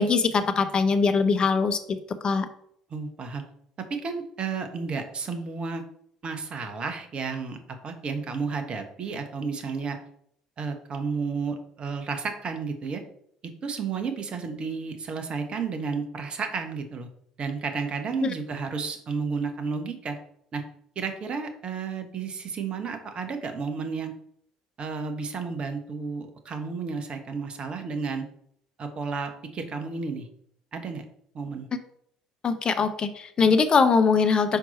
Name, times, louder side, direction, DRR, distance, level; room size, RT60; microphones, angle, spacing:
voice 1, 0.0-2.0 2.2-2.4 18.2-18.3 32.4-34.6, left 5 dB, 35° left, 9 dB, 0.8 m, -22 dB
voice 2, 2.9-3.4 3.9-5.8 6.2-7.6 7.8-10.0 10.6-13.0 13.4-17.1 17.4-20.2 20.5-20.6 20.9-24.1 24.8-28.3 28.8-30.3 30.7-31.0 31.3-31.7, right 5 dB, 40° right, 6 dB, 1.2 m, -32 dB
5.9 x 4.6 x 4.2 m, 0.67 s
hypercardioid pair, 60°, 3 cm